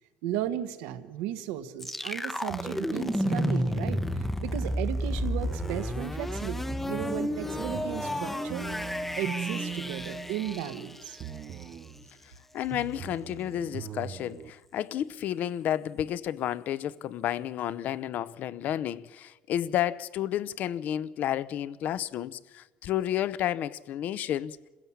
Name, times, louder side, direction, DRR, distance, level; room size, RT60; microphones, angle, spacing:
voice 1, 0.2-8.7 9.2-11.2, right 11 dB, 85° right, 1.5 m, -35 dB
sound 1, 1.8-11.6, left 1 dB, 5° left, 0.8 m, -32 dB
sound 2, 2.5-4.7 5.2-6.0 6.7-10.8 11.2-12.0 12.7-14.5, right 8 dB, 40° right, 0.8 m, -40 dB
voice 2, 12.5-24.6, left 11 dB, 50° left, 0.7 m, -31 dB
27.5 x 16.0 x 7.3 m
cardioid pair, 130°, 4 cm